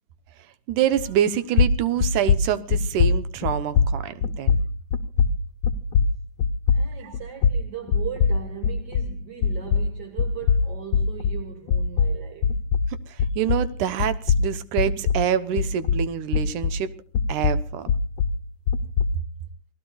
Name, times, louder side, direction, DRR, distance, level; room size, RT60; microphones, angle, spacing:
voice 1, 0.7-4.6 7.0-7.1 13.1-16.9 17.3-17.9, right 9 dB, 75° right, 2.4 m, -26 dB
sound 1, 1.0-1.3 1.5-9.2 9.4-13.7 14.0-16.9 17.1-19.2, left 5 dB, 60° left, 1.4 m, -22 dB
voice 2, 6.7-12.6, right 9 dB, 40° right, 1.7 m, -38 dB
29.0 x 18.5 x 2.4 m
omnidirectional pair, 3.7 m